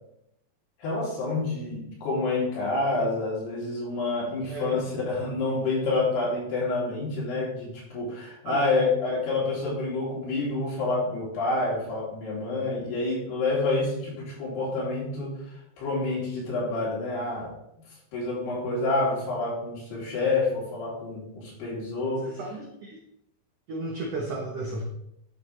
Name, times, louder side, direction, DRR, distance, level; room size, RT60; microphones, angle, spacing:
voice 1, 0.8-15.4 15.8-17.5 18.1-22.3, left 3 dB, 80° left, -5 dB, 5.4 m, -28 dB
voice 2, 4.5-4.8 8.4-8.7 22.2-23.0 23.7-24.8, right 2 dB, 75° right, 0 dB, 1.5 m, -34 dB
11.5 x 7.5 x 3.3 m, 0.77 s
omnidirectional pair, 4.6 m